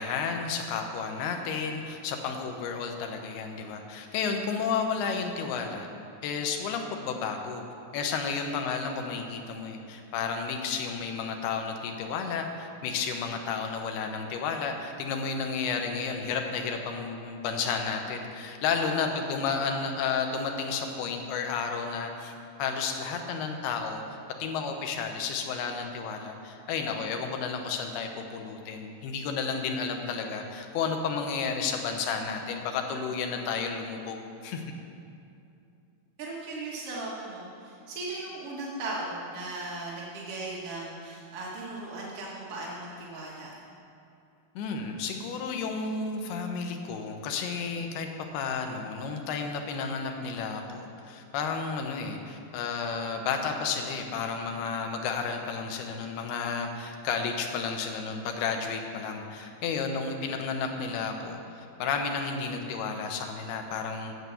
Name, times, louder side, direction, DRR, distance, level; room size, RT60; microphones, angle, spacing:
voice 1, 0.0-5.9 6.2-7.6 7.9-22.3 22.6-24.0 24.4-34.2 34.4-34.6 44.6-48.1 48.3-64.1, left 5 dB, 90° left, 4 dB, 2.9 m, -32 dB
voice 2, 18.7-19.1 36.2-43.5, right 2 dB, 60° right, -5 dB, 1.5 m, -37 dB
9.5 x 7.8 x 6.9 m, 2.6 s
omnidirectional pair, 4.5 m